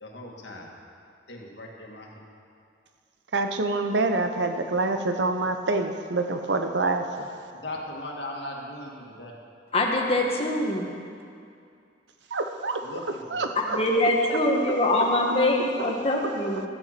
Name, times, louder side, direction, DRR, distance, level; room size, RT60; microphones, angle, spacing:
voice 1, 0.0-0.7 1.3-2.2 6.7-6.9 7.6-9.3 12.8-13.0 13.3-13.5, left 1 dB, 75° left, -1 dB, 1.9 m, -38 dB
voice 2, 3.3-7.3 12.3-12.8 13.3-13.8 15.8-15.9, right 3 dB, 75° right, 6 dB, 0.8 m, -26 dB
voice 3, 9.7-10.8 13.7-16.6, left 1 dB, 30° left, 0 dB, 1.4 m, -23 dB
14.0 x 9.0 x 5.9 m, 2.4 s
head